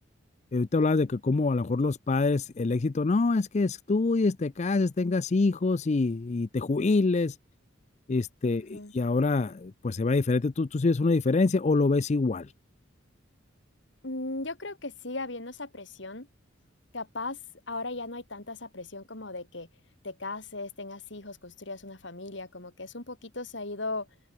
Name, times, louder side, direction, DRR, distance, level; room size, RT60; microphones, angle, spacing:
voice 1, 0.5-7.4 8.1-12.5, left 3 dB, 35° left, 0.4 m, -25 dB
voice 2, 8.4-8.9 14.0-16.3 16.9-17.4 17.7-19.7 20.0-24.1, left 2 dB, 65° left, 2.9 m, -37 dB
open air
head